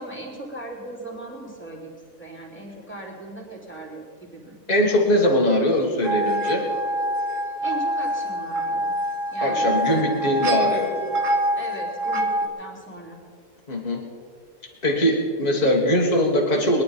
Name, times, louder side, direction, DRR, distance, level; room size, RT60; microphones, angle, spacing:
voice 1, 0.0-4.6 7.6-9.0 9.3-13.2, right 2 dB, 10° left, -1 dB, 3.1 m, -38 dB
voice 2, 4.7-6.7 9.4-10.9 13.7-14.1 14.8-16.8, equal, 30° left, -1 dB, 1.9 m, -21 dB
sound 1, 6.0-12.5, equal, 65° right, 1.6 m, -25 dB
21.5 x 10.5 x 5.2 m, 2.2 s
omnidirectional pair, 1.5 m